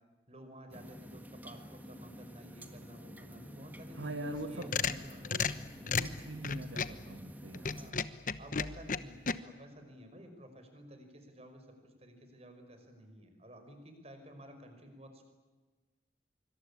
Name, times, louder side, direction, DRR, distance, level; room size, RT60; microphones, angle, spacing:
voice 1, 0.3-5.3 5.7-6.0 7.7-8.0 8.4-11.7 12.0-15.2, equal, 35° right, 6 dB, 5.5 m, -52 dB
sound 1, 0.7-7.9, equal, 10° right, 1.7 m, -50 dB
voice 2, 3.9-4.7 5.2-5.5 5.8-7.8, right 1 dB, 85° right, 7 dB, 1.6 m, -43 dB
sound 2, 4.3-7.0 7.5-9.3, left 5 dB, 45° left, 1.1 m, -34 dB
26.0 x 24.5 x 8.6 m, 1.3 s
head